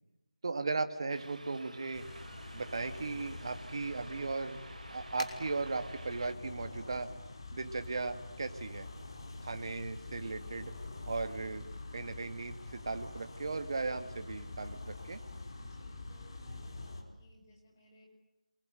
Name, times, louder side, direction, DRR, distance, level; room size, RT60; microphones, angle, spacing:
voice 1, 0.4-2.1 2.5-4.6 4.9-7.1 7.5-8.9 9.4-10.7 11.1-11.6 11.9-15.2, right 3 dB, 40° right, 8 dB, 2.1 m, -37 dB
sound 1, 1.1-6.3, right 2 dB, 75° right, 4.6 m, -51 dB
sound 2, 1.9-17.0, left 2 dB, 35° left, 4.5 m, -46 dB
sound 3, 3.2-8.5, left 2 dB, 60° left, 4.9 m, -55 dB
voice 2, 15.6-18.1, left 1 dB, 20° left, -1 dB, 6.5 m, -61 dB
27.5 x 22.0 x 9.2 m, 0.94 s
figure-of-eight pair, 175°, 4 cm